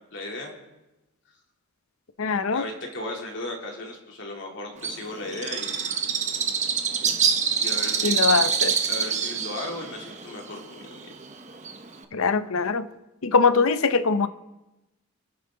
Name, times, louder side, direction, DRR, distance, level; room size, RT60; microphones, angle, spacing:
voice 1, 0.1-0.5 2.5-5.8 7.5-8.2 8.9-11.1, left 1 dB, 55° left, 0 dB, 3.1 m, -36 dB
voice 2, 2.2-2.6 8.0-8.8 12.1-12.9 13.2-14.3, left 4 dB, 75° left, 13 dB, 0.8 m, -22 dB
Bird, 4.8-12.0, right 6 dB, 30° right, 1.0 m, -26 dB
28.0 x 9.5 x 3.9 m, 1.0 s
head